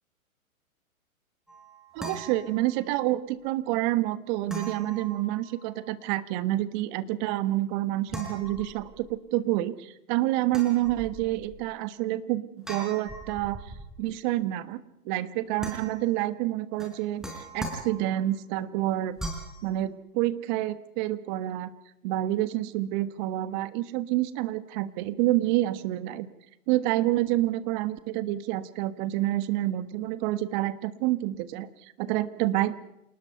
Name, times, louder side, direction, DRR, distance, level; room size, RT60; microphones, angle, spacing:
sound 1, 1.5-3.1 4.5-5.9 8.1-9.1 10.5-11.6 12.6-14.1 15.6-16.2 16.8-18.4 19.2-19.6, right 1 dB, ahead, 4.6 m, -40 dB
voice 1, 1.9-13.6 14.0-19.2 19.6-21.7 22.0-26.3 26.7-32.8, right 15 dB, 35° right, 14 dB, 1.4 m, -28 dB
28.0 x 19.5 x 5.7 m, 0.85 s
hypercardioid pair, 125°, 42 cm